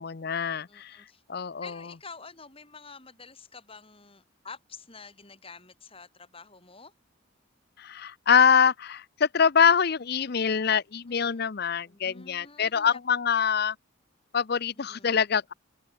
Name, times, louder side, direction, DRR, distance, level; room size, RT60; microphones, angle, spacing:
voice 1, 0.0-0.9 1.3-1.7 7.8-13.7 14.3-15.5, left 7 dB, 50° left, 0.6 m, -24 dB
voice 2, 0.7-1.2 1.6-6.9 11.1-11.5 11.8-13.0 14.7-15.2, left 4 dB, 25° left, 5.7 m, -48 dB
head